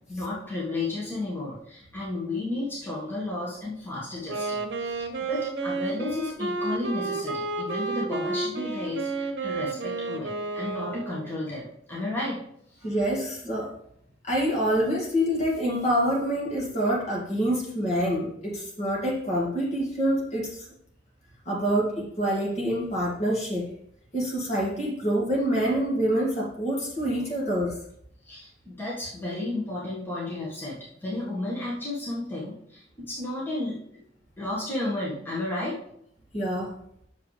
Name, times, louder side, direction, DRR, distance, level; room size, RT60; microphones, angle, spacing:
voice 1, 0.1-12.8 28.2-33.8 34.4-35.8, left 2 dB, 10° left, -7 dB, 1.7 m, -33 dB
Wind instrument woodwind instrument, 4.2-11.3, right 3 dB, 60° right, 1.0 m, -31 dB
voice 2, 12.8-13.7 14.2-20.5 21.5-23.7 24.1-27.8 36.3-36.7, equal, 35° left, -3 dB, 2.2 m, -26 dB
8.1 x 6.7 x 3.4 m, 0.71 s
head